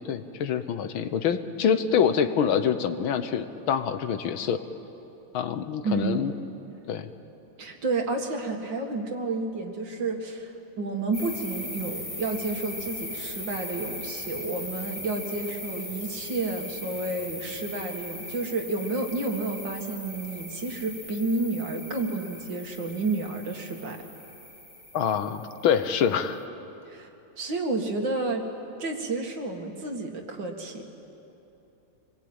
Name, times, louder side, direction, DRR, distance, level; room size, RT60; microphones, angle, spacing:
voice 1, 0.0-4.6 5.3-6.3 6.9-7.1 24.9-26.4, left 7 dB, 75° left, 10 dB, 1.8 m, -26 dB
voice 2, 5.8-6.2 7.6-24.0 26.9-27.1 27.4-28.5 28.8-30.8, right 3 dB, 60° right, 3 dB, 2.5 m, -30 dB
sound 1, 11.1-26.1, left 1 dB, 15° left, 1.7 m, -39 dB
25.5 x 21.0 x 8.9 m, 3.0 s
omnidirectional pair, 2.3 m